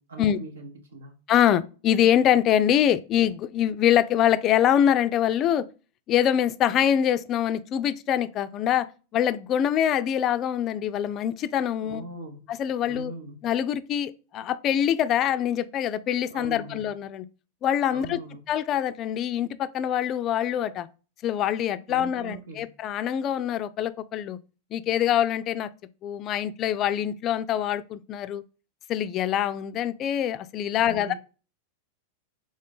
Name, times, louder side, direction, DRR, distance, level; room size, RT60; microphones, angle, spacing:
voice 1, 0.0-1.2 11.8-12.5 12.8-13.4 16.3-16.8 17.9-18.4 21.9-22.7 30.8-31.1, right 2 dB, 70° right, 0.7 m, -41 dB
voice 2, 1.3-5.6 6.1-8.9 9.1-12.0 12.5-13.1 13.4-17.2 17.6-18.2 18.5-20.9 21.2-24.4 24.7-25.7 26.0-28.4 28.9-31.1, left 10 dB, 35° left, 0.3 m, -24 dB
3.8 x 3.8 x 3.4 m
figure-of-eight pair, 90°, 0 cm